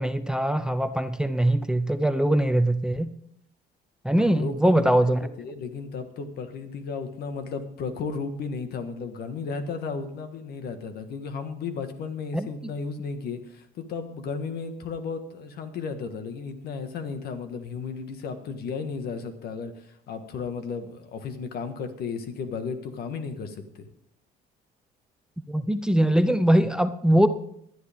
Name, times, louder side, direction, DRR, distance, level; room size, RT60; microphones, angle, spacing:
voice 1, 0.0-3.1 4.0-5.3 12.3-12.5 25.5-27.3, right 1 dB, 5° right, 12 dB, 0.6 m, -22 dB
voice 2, 4.2-4.5 4.8-23.9, left 5 dB, 65° left, 8 dB, 1.7 m, -34 dB
19.0 x 11.0 x 3.7 m, 0.72 s
cardioid pair, 110°, 17 cm